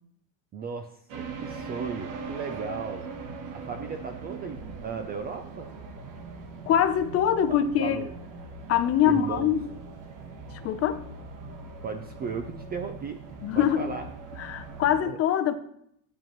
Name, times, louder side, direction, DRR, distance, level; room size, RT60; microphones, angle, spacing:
voice 1, 0.5-0.9 1.2-3.1 3.5-5.7 7.5-8.1 9.1-9.5 10.6-10.7 11.8-13.2 13.5-14.1 15.0-15.2, right 5 dB, 25° right, 0.3 m, -36 dB
sound 1, 1.1-15.0, right 4 dB, 45° right, 1.2 m, -41 dB
voice 2, 6.7-8.1 8.7-9.6 10.6-11.0 13.4-13.9 14.4-15.5, left 9 dB, 35° left, 0.6 m, -23 dB
13.5 x 8.9 x 3.0 m
cardioid pair, 160°, 44 cm